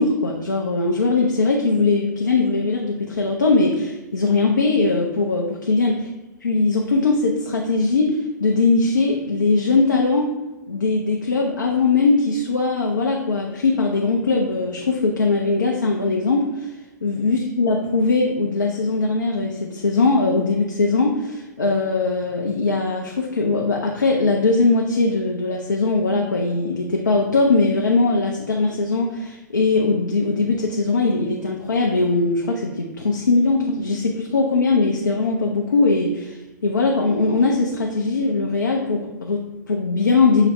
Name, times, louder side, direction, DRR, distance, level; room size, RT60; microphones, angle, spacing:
voice 1, 0.0-6.0 6.4-10.3 10.7-16.7 17.0-40.5, left 3 dB, 85° left, 0 dB, 0.6 m, -20 dB
5.9 x 2.1 x 4.2 m, 1.1 s
figure-of-eight pair, 110°, 10 cm